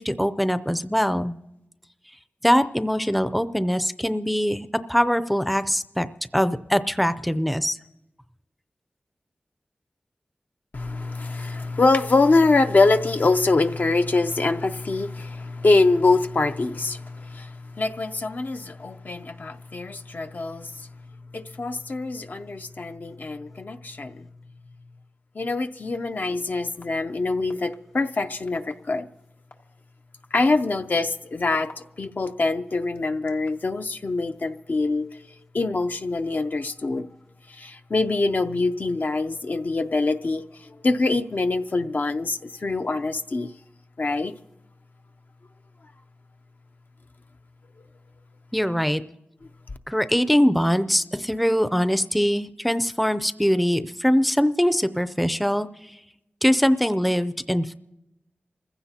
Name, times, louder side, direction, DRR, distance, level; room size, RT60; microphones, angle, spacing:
voice 1, 0.0-1.4 2.4-6.1 6.3-7.8 48.5-49.0 49.9-55.7 56.4-57.7, equal, ahead, 0.4 m, -22 dB
voice 2, 10.7-20.9 21.3-24.3 25.4-29.1 30.3-35.2 35.5-37.1 37.5-43.5 44.0-44.3, left 3 dB, 50° left, 0.5 m, -24 dB
sound 1, 25.9-26.0 26.8-26.9 27.5-27.7 28.5-28.7 29.5-29.6 30.2-32.3 32.9-33.7, left 3 dB, 85° left, 1.6 m, -46 dB
28.5 x 15.5 x 2.8 m
wide cardioid pair, 95°, 4 cm